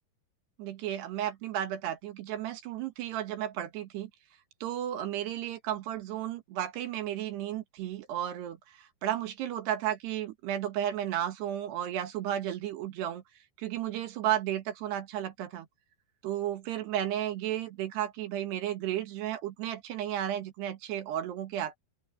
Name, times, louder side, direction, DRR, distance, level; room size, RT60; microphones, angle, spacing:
voice 1, 0.6-4.1 4.6-13.2 13.6-15.7 16.2-21.8, right 11 dB, 80° right, 3.8 m, -33 dB
open air
omnidirectional pair, 4.8 m